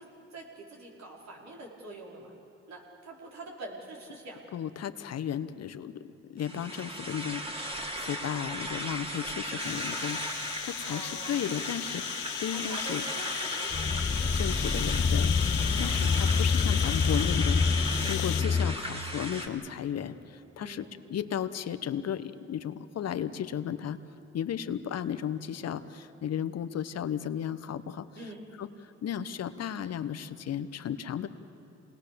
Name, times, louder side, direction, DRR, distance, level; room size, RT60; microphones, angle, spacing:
voice 1, 0.0-2.3 2.7-4.4 10.8-11.5 12.5-14.9 15.5-16.0 20.6-20.9 28.1-28.4, right 2 dB, 65° right, -1 dB, 4.9 m, -46 dB
voice 2, 4.5-6.0 6.3-13.0 14.3-24.0 24.3-28.1 28.6-28.7 29.0-31.3, left 9 dB, 60° left, 12 dB, 1.0 m, -35 dB
sound 1, 6.4-19.5, equal, 20° right, 2.9 m, -37 dB
sound 2, 9.6-18.4, left 16 dB, 80° left, 0.6 m, -36 dB
sound 3, 13.7-18.8, left 4 dB, 20° left, 0.6 m, -27 dB
27.5 x 19.5 x 6.9 m, 2.9 s
supercardioid pair, 70°, 29 cm